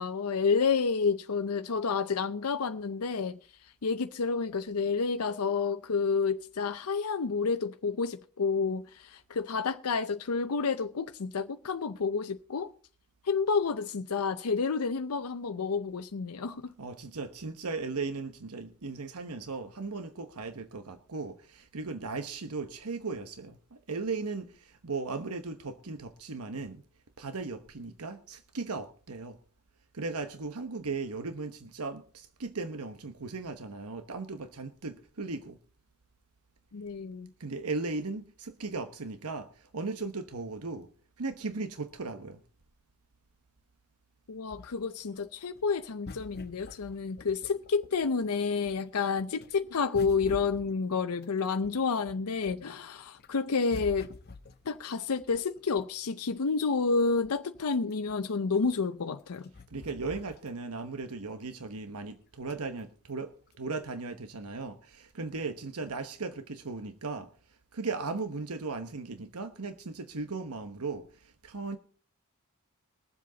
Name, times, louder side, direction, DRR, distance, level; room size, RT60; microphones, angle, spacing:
voice 1, 0.0-3.4 3.8-12.7 13.2-16.7 36.7-37.3 44.3-54.1 54.7-59.5, left 5 dB, 85° left, 0.6 m, -30 dB
voice 2, 16.8-26.8 27.2-29.4 29.9-35.6 37.4-40.9 41.2-42.4 59.7-67.3 67.7-71.8, right 3 dB, 85° right, 1.1 m, -37 dB
sound 1, 44.5-48.3 48.6-52.7 53.1-56.1 56.7-56.8 57.0-60.8 61.2-61.3 62.4-62.8 63.5-63.6, left 3 dB, 45° left, 0.8 m, -48 dB
22.0 x 7.7 x 4.0 m
head